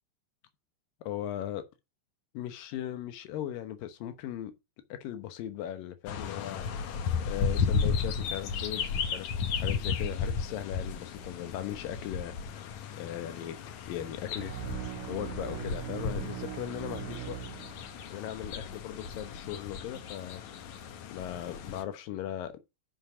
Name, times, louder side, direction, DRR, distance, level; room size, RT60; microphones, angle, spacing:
voice 1, 1.0-1.6 2.3-4.5 4.9-6.7 7.3-12.3 13.0-13.6 13.9-14.5 15.1-17.4 18.1-20.4 21.1-22.5, left 11 dB, 85° left, 2.8 m, -38 dB
sound 1, 6.1-21.8, left 6 dB, 65° left, 2.2 m, -34 dB
sound 2, 14.3-18.2, right 14 dB, 90° right, 2.4 m, -40 dB
6.6 x 5.8 x 6.6 m
omnidirectional pair, 3.9 m